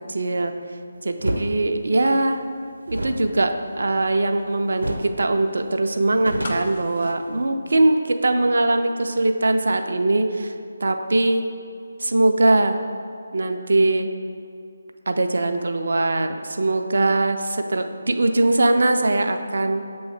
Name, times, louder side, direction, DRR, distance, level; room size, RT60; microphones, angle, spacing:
voice 1, 0.1-0.5 1.0-2.4 2.9-10.5 10.8-11.4 12.0-12.8 13.3-14.1 15.1-19.8, right 2 dB, 55° right, 6 dB, 0.4 m, -21 dB
sound 1, 1.2-1.5 2.9-4.4 4.8-5.2 5.5-5.6 5.9-7.4, right 1 dB, 80° right, 0.8 m, -30 dB
sound 2, 6.4-8.5 8.8-8.9, left 3 dB, 40° left, 0.5 m, -38 dB
6.7 x 3.1 x 4.5 m, 2.4 s
figure-of-eight pair, 150°, 0 cm